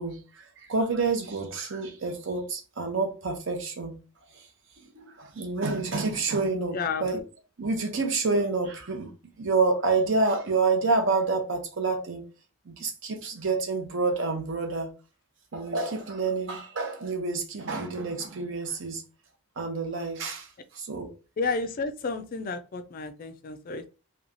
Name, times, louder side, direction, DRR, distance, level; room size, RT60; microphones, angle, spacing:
voice 1, 0.0-4.0 4.3-4.4 4.9-7.2 7.6-9.1 9.4-12.2 12.7-14.9 15.5-19.0 19.6-20.5 20.7-21.1, right 3 dB, 60° right, 0.7 m, -28 dB
voice 2, 6.7-7.1 21.4-23.9, left 4 dB, 40° left, 0.3 m, -31 dB
3.0 x 2.3 x 2.5 m
head